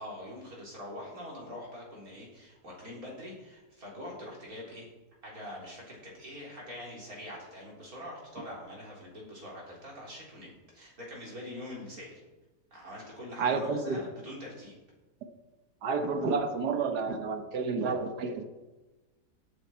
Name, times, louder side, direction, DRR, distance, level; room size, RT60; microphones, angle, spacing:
voice 1, 0.0-4.9 5.2-12.2 12.7-14.7, left 1 dB, 60° right, -3 dB, 4.5 m, -44 dB
voice 2, 13.4-14.0 15.8-18.4, right 4 dB, 85° right, 7 dB, 1.8 m, -30 dB
16.5 x 9.5 x 4.5 m, 1.2 s
omnidirectional pair, 1.7 m